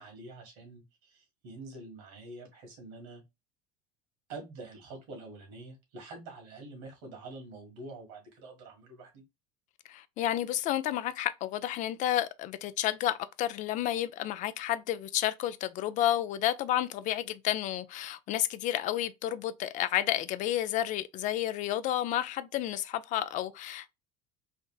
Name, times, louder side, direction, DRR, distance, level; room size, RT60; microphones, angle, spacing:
voice 1, 0.0-3.2 4.3-9.2, right 2 dB, 75° right, 1.6 m, -46 dB
voice 2, 9.9-23.9, left 12 dB, 50° left, 0.4 m, -31 dB
3.4 x 2.6 x 2.2 m
supercardioid pair, 115°, 17 cm